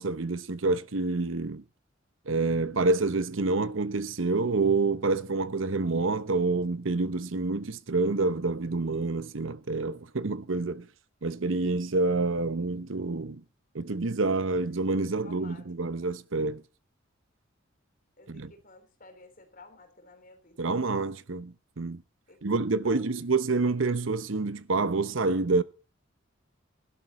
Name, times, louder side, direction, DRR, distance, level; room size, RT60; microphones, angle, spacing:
voice 1, 0.0-1.6 2.3-10.9 11.2-13.4 13.7-16.6 18.3-18.5 20.6-22.0 22.4-25.6, right 3 dB, 70° right, 0.9 m, -28 dB
voice 2, 15.2-15.9 18.2-20.7 22.3-22.4 22.8-23.1, left 3 dB, 45° left, 3.8 m, -53 dB
16.5 x 12.0 x 4.2 m
head